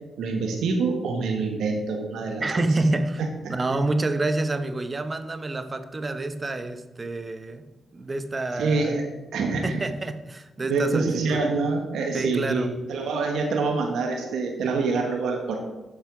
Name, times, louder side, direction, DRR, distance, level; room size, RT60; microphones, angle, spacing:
voice 1, 0.2-2.6 3.2-3.5 8.5-9.1 9.3-9.8 10.6-15.6, right 3 dB, 75° right, 2 dB, 1.2 m, -26 dB
voice 2, 2.4-3.2 3.5-7.6 7.9-9.0 9.6-11.4 12.1-12.7, right 2 dB, 35° right, 10 dB, 0.8 m, -28 dB
7.6 x 6.6 x 4.8 m, 1.1 s
supercardioid pair, 50°, 0 cm